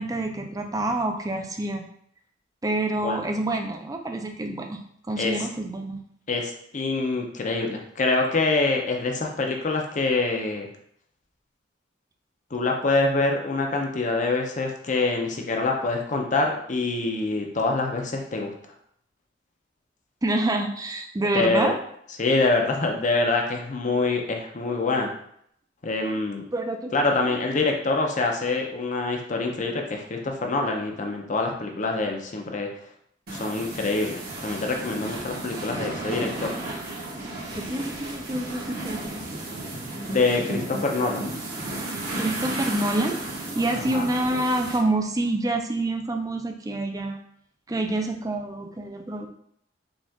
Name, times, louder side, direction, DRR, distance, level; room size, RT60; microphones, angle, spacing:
voice 1, 0.0-1.8 2.6-4.8 5.1-6.0 20.2-21.7 26.5-26.9 27.2-27.4 37.5-39.5 42.2-43.2 43.5-47.2 47.7-49.3, right 2 dB, 20° right, 4 dB, 0.4 m, -27 dB
voice 2, 6.3-10.7 12.5-18.5 21.3-21.7 22.2-25.1 25.8-26.4 26.9-32.7 33.3-36.5 40.1-41.3 43.9-44.1, left 3 dB, 40° left, 2 dB, 0.6 m, -25 dB
sound 1, 33.3-44.8, right 2 dB, 55° right, 1.2 m, -33 dB
5.2 x 2.4 x 3.5 m, 0.69 s
head